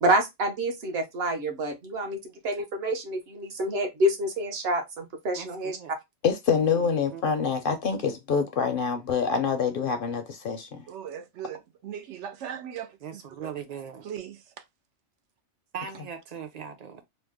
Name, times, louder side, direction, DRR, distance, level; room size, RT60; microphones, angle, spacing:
voice 1, 0.0-2.2 2.4-5.8, right 1 dB, 65° right, 1.0 m, -27 dB
voice 2, 5.4-5.9 6.7-7.2 13.0-14.1 15.7-17.0, right 7 dB, 45° right, 0.6 m, -39 dB
voice 3, 6.2-10.8, left 6 dB, 60° left, 0.6 m, -26 dB
voice 4, 10.9-13.5 14.0-14.7, right 9 dB, 90° right, 0.9 m, -39 dB
3.0 x 2.0 x 3.4 m
omnidirectional pair, 1.2 m